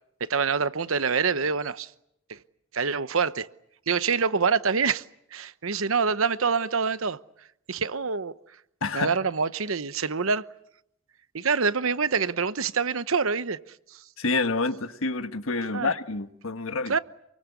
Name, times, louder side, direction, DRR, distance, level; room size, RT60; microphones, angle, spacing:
voice 1, 0.2-1.9 2.3-2.4 2.7-3.5 3.9-5.0 5.3-7.2 7.7-8.3 8.9-10.4 11.3-13.6 13.9-14.0 15.7-15.9 16.9-17.0, right 5 dB, 80° right, 1.0 m, -26 dB
voice 2, 8.8-9.1 14.2-16.9, left 3 dB, 80° left, 1.4 m, -28 dB
28.5 x 23.0 x 8.4 m
head